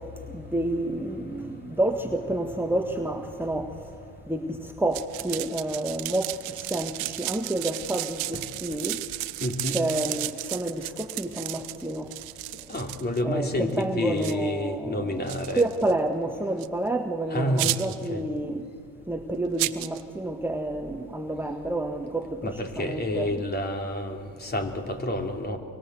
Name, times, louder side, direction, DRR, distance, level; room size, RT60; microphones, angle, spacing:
voice 1, 0.3-3.7 4.3-6.3 6.6-9.0 9.7-12.1 13.2-18.7 19.1-22.5 22.8-23.4, right 1 dB, 5° right, 4 dB, 1.5 m, -29 dB
sound 1, 4.9-13.2 13.7-13.8 14.2-14.3 15.3-15.9 16.6-16.7 17.6-18.1 19.6-20.0, right 20 dB, 70° right, 1.0 m, -33 dB
voice 2, 9.4-9.8 12.7-15.6 17.3-18.2 22.4-25.6, left 1 dB, 25° left, 3 dB, 3.4 m, -29 dB
24.5 x 23.5 x 7.9 m, 2.2 s
hypercardioid pair, 65°, 37 cm